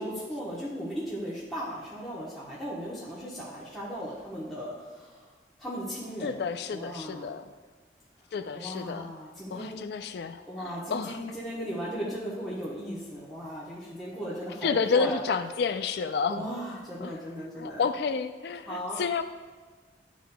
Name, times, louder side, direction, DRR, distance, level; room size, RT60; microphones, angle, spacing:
voice 1, 0.0-5.3 5.6-7.4 8.5-9.8 10.5-15.7 16.3-17.9 18.7-19.0, equal, ahead, -9 dB, 1.0 m, -37 dB
voice 2, 6.2-7.4 8.3-9.1 9.5-10.4 10.9-11.2 14.6-16.5 17.0-17.1 17.6-19.2, left 5 dB, 65° left, 10 dB, 0.3 m, -30 dB
11.0 x 4.0 x 2.2 m, 1.4 s
head